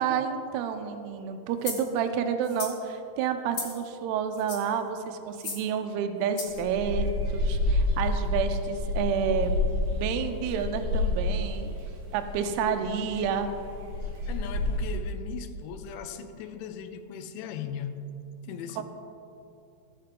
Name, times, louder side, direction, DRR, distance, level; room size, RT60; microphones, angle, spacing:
voice 1, 0.0-9.5 9.9-11.7 12.1-13.5 18.8-18.9, right 7 dB, 85° right, 2.3 m, -29 dB
sound 1, 1.6-1.9 2.4-2.8 3.5-3.8 4.3-4.7 5.3-5.7 6.4-6.6, left 4 dB, 55° left, 2.1 m, -36 dB
sound 2, 6.5-15.0, left 2 dB, 40° right, 2.6 m, -29 dB
voice 2, 14.3-18.1 18.4-18.8, left 8 dB, 85° left, 2.9 m, -38 dB
17.0 x 5.7 x 3.7 m
omnidirectional pair, 5.4 m